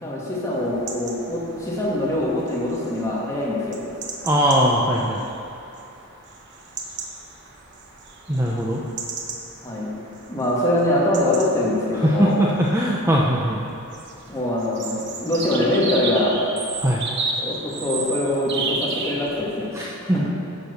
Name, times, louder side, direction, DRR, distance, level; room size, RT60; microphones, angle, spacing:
voice 1, 0.0-3.8 9.6-9.9 10.3-12.4 14.3-16.4 17.4-19.7 20.0-20.3, left 1 dB, 15° left, -6 dB, 1.9 m, -23 dB
sound 1, 0.5-19.7, right 3 dB, 55° right, 1.1 m, -34 dB
voice 2, 4.2-5.2 8.3-8.8 12.0-13.6 16.8-17.0 19.7-20.3, equal, 15° right, -4 dB, 0.7 m, -20 dB
10.5 x 6.1 x 7.0 m, 2.8 s
head